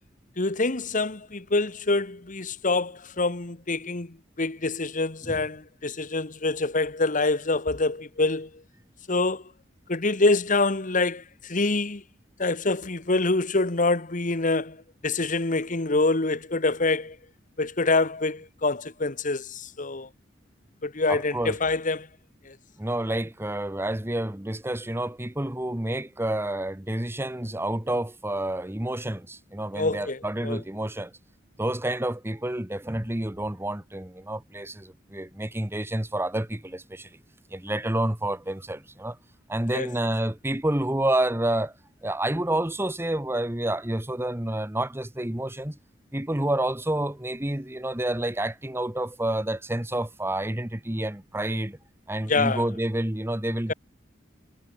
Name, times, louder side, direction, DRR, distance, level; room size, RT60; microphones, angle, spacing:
voice 1, 0.4-8.5 9.1-9.4 9.9-12.0 12.4-17.2 17.6-20.1 20.8-22.1 22.4-22.6 29.7-30.6 39.7-39.9 52.3-52.6, left 3 dB, 45° left, 1.5 m, -26 dB
voice 2, 21.1-21.6 22.8-31.1 31.6-37.2 37.5-39.2 39.5-41.7 42.0-45.8 46.1-51.8 52.1-53.7, right 1 dB, 15° right, 1.3 m, -29 dB
head